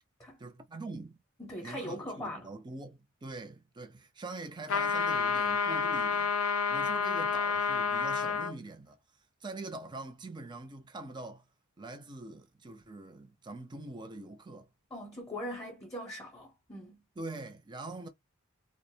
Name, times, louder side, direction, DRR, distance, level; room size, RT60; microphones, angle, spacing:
voice 1, 0.4-1.2 1.6-6.3 6.7-9.0 9.4-11.4 11.8-14.7 17.2-18.1, right 2 dB, 20° right, 0.5 m, -44 dB
voice 2, 1.4-2.5 14.9-17.0, equal, 15° left, 0.7 m, -41 dB
sound 1, 4.7-8.5, left 5 dB, 80° left, 0.5 m, -29 dB
2.3 x 2.1 x 2.6 m
head